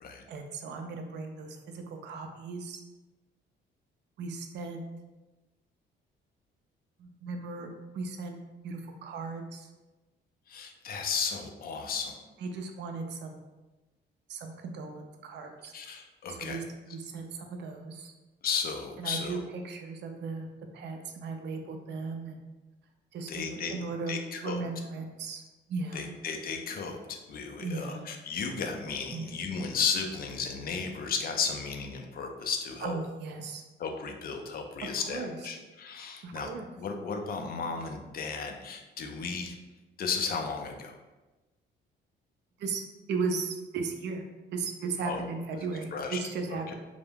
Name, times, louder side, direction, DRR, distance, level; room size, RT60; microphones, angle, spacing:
voice 1, 0.3-2.8 4.2-4.8 7.0-8.4 8.6-9.7 12.4-13.4 14.3-15.8 16.3-16.6 16.9-18.1 19.0-20.5 20.7-22.4 23.1-25.4 25.7-26.1 27.6-28.0 29.1-29.3 32.8-33.6 34.8-35.4 36.2-36.7 42.6-44.2 44.5-46.7, right 4 dB, 60° right, 4 dB, 0.4 m, -36 dB
voice 2, 10.5-12.2 15.7-16.6 18.4-19.4 23.3-23.7 24.1-24.6 25.9-33.0 33.8-36.5 36.8-39.5 40.0-40.9 45.0-45.2 45.9-46.2 46.5-46.7, left 5 dB, 50° left, 4 dB, 0.4 m, -34 dB
2.2 x 2.0 x 3.2 m, 1.1 s
cardioid pair, 90°, 20 cm